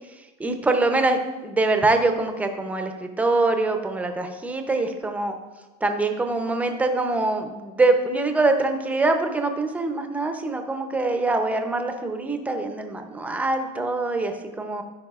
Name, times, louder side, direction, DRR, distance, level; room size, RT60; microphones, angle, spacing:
voice 1, 0.4-5.4 5.8-14.8, right 2 dB, 10° right, 5 dB, 0.6 m, -24 dB
13.0 x 5.2 x 2.4 m, 1.2 s
supercardioid pair, 135°, 19 cm